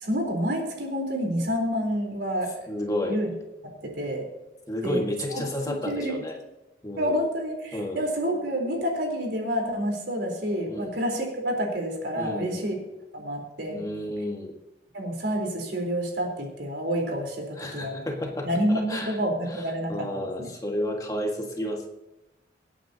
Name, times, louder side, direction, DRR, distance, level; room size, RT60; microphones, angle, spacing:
voice 1, 0.0-2.5 3.0-3.3 3.6-4.2 4.8-5.0 5.3-6.2 7.0-12.8 13.1-13.8 14.9-18.1 18.4-19.9 20.4-20.5, equal, 75° right, 0 dB, 4.1 m, -28 dB
voice 2, 2.7-3.2 4.7-6.4 6.8-7.2 7.7-8.0 10.7-11.0 12.2-12.6 13.7-14.6 17.6-19.2 19.5-21.9, left 1 dB, 20° left, 1 dB, 1.8 m, -31 dB
25.0 x 9.1 x 2.9 m, 0.98 s
head